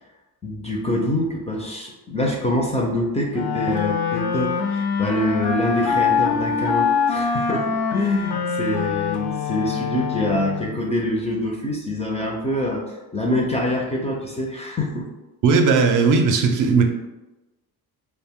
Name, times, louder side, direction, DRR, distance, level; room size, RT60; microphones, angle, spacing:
voice 1, 0.4-15.1, left 1 dB, 20° left, -1 dB, 0.3 m, -25 dB
Wind instrument woodwind instrument, 3.3-10.8, left 6 dB, 70° left, 0.5 m, -24 dB
voice 2, 15.4-16.8, right 4 dB, 55° right, 4 dB, 0.5 m, -17 dB
2.4 x 2.1 x 3.5 m, 1.0 s
cardioid pair, 115°, 39 cm